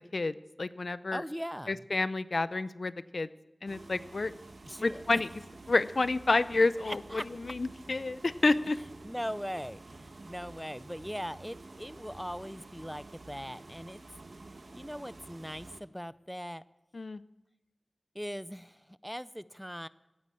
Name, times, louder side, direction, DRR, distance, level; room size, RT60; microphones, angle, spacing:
voice 1, 0.1-1.2 1.7-3.3 3.6-4.3 4.8-5.3 5.7-8.8 16.9-17.2, left 3 dB, 75° left, 15 dB, 0.6 m, -29 dB
voice 2, 1.1-1.8 4.7-5.2 6.9-7.3 9.0-14.0 14.7-16.6 18.1-19.9, equal, ahead, 17 dB, 0.5 m, -40 dB
sound 1, 3.7-15.8, right 2 dB, 75° right, 1.2 m, -50 dB
17.5 x 9.7 x 8.6 m, 0.98 s
wide cardioid pair, 60°, 0 cm